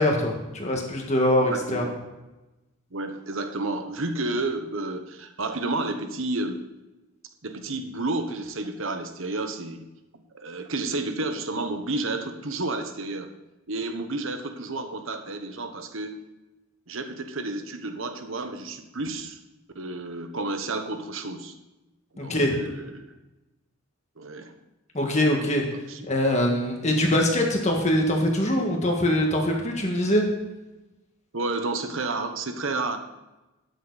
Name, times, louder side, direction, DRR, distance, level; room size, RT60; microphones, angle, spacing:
voice 1, 0.0-1.9 22.2-22.6 24.9-25.6 26.1-30.2, left 1 dB, 30° left, 1 dB, 1.8 m, -23 dB
voice 2, 1.5-2.0 2.9-6.6 7.4-9.8 10.3-13.3 13.7-16.1 16.9-19.4 19.7-21.6 22.1-23.0 24.2-24.5 25.2-25.3 25.7-26.1 31.3-33.0, right 2 dB, 65° right, 7 dB, 1.2 m, -31 dB
13.0 x 9.2 x 4.1 m, 1.0 s
head